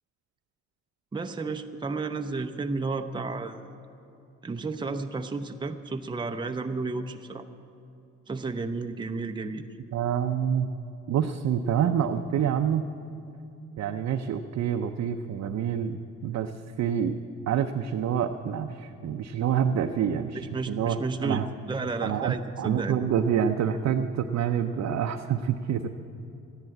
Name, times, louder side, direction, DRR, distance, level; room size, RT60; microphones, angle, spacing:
voice 1, 1.1-3.8 4.4-7.4 8.3-9.7 20.3-22.9, right 3 dB, 15° right, 6 dB, 0.7 m, -32 dB
voice 2, 9.9-10.7 11.1-12.9 13.8-16.5 16.8-17.2 17.5-21.5 22.0-25.9, right 8 dB, 60° right, 4 dB, 0.7 m, -27 dB
13.5 x 10.5 x 8.5 m, 2.7 s
cardioid pair, 90°, 30 cm